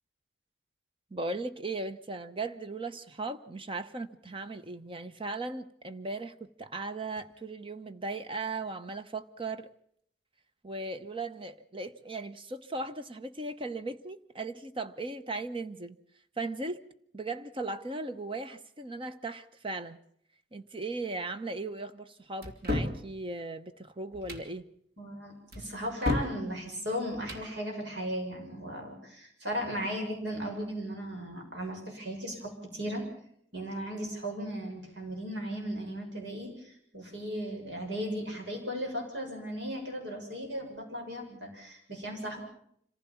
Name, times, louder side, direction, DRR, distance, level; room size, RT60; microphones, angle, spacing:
voice 1, 1.1-9.7 10.6-16.0 16.4-16.8 17.1-20.0 20.5-24.7, right 3 dB, 30° right, 0.9 m, -37 dB
sound 1, 22.4-23.0 24.1-24.5 25.5-26.4 27.1-27.5, left 1 dB, 60° right, 2.8 m, -32 dB
voice 2, 25.0-33.0 33.5-42.4, equal, 75° right, 6.9 m, -36 dB
26.0 x 15.5 x 7.2 m
head